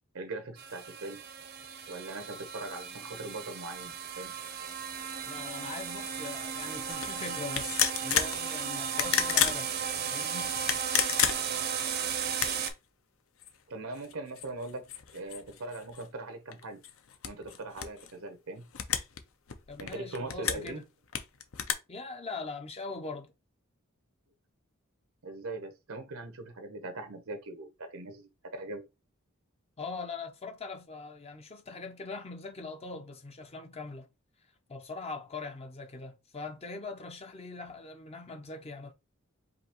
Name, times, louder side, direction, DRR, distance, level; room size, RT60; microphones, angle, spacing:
voice 1, 0.1-1.2 1.9-4.4 13.7-16.8 17.2-18.7 19.8-20.8 25.2-28.8, right 2 dB, 80° right, 0.8 m, -41 dB
sound 1, 0.6-12.7, right 7 dB, 45° right, 0.6 m, -35 dB
voice 2, 5.2-9.8 10.1-10.5 19.7-20.8 21.9-23.3 29.8-34.1 34.7-38.9, left 3 dB, 30° left, 0.5 m, -41 dB
sound 2, 6.9-7.1 7.5-8.4 8.9-9.6 10.5-11.7 12.3-12.7 13.4-13.5 13.9-16.1 16.5-18.1 18.7-19.2 19.5-20.7 21.1-21.7, left 9 dB, 70° left, 0.6 m, -30 dB
4.9 x 2.8 x 2.9 m
head